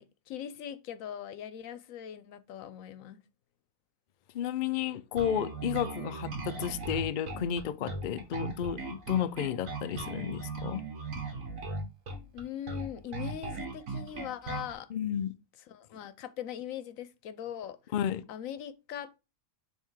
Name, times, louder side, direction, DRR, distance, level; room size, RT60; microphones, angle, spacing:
voice 1, 0.0-3.2 12.3-14.9 15.7-17.9 18.3-19.1, left 10 dB, 90° left, 1.1 m, -41 dB
voice 2, 4.3-10.8 14.9-15.3 17.9-18.2, left 9 dB, 60° left, 0.5 m, -32 dB
Bass guitar, 5.2-14.7, right 3 dB, 90° right, 1.8 m, -38 dB
5.6 x 3.6 x 4.6 m
omnidirectional pair, 1.4 m